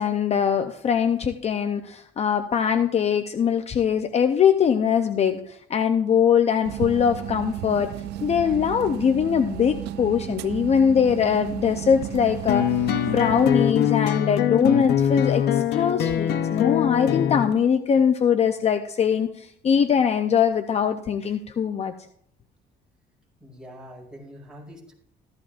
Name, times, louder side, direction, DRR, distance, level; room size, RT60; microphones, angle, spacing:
voice 1, 0.0-7.9 8.2-12.6 13.1-21.9, left 7 dB, 40° left, 8 dB, 0.7 m, -22 dB
sound 1, 6.6-13.7, right 11 dB, 80° right, 0.6 m, -33 dB
sound 2, 12.5-17.5, left 10 dB, 75° left, 0.9 m, -23 dB
voice 2, 23.4-24.9, equal, 5° right, -3 dB, 5.7 m, -44 dB
15.0 x 14.0 x 2.6 m, 0.69 s
cardioid pair, 110°, 17 cm